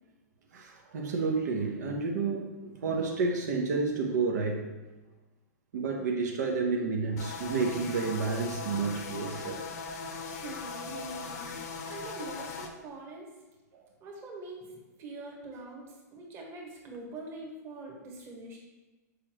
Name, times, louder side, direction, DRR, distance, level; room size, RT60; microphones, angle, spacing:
voice 1, 0.5-4.7 5.7-9.6 13.7-13.8, right 4 dB, 75° right, 1 dB, 0.9 m, -30 dB
sound 1, 7.2-12.7, left 4 dB, 70° left, 0.8 m, -39 dB
voice 2, 10.3-13.3 14.0-18.6, right 2 dB, 25° right, -1 dB, 1.3 m, -44 dB
6.8 x 5.1 x 2.9 m, 1.2 s
hypercardioid pair, 145°, 9 cm